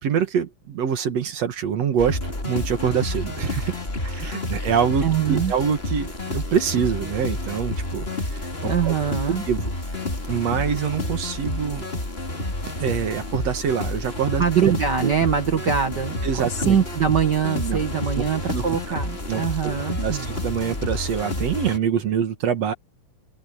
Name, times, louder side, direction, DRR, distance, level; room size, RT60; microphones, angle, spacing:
voice 1, 0.0-8.9 9.5-9.7 10.3-11.9 12.8-14.4 15.0-15.1 16.2-16.8 17.6-17.8 18.1-18.2 18.5-18.6 18.9-19.0 19.3-22.7, right 7 dB, 55° right, 2.4 m, -25 dB
sound 1, 2.0-21.8, left 2 dB, 15° left, 3.3 m, -29 dB
voice 2, 5.0-5.5 8.7-9.4 14.4-16.2 16.4-20.3, right 8 dB, 80° right, 0.9 m, -23 dB
open air
omnidirectional pair, 4.2 m